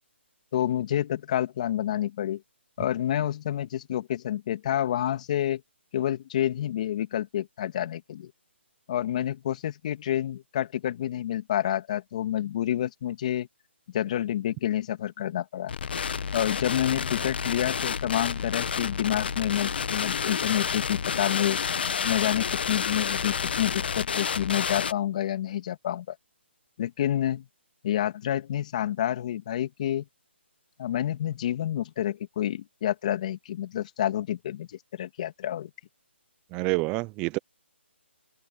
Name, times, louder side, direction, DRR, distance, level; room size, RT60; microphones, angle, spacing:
voice 1, 0.5-2.4 2.8-5.6 5.9-8.3 8.9-13.5 13.9-15.7 16.3-21.6 22.0-26.2 26.8-27.5 27.8-30.0 30.8-35.7, left 11 dB, 35° left, 2.8 m, -28 dB
sound 1, 15.7-24.9, left 6 dB, 55° left, 1.2 m, -30 dB
voice 2, 36.5-37.4, right 25 dB, 15° right, 0.7 m, -27 dB
hypercardioid pair, 160°, 7 cm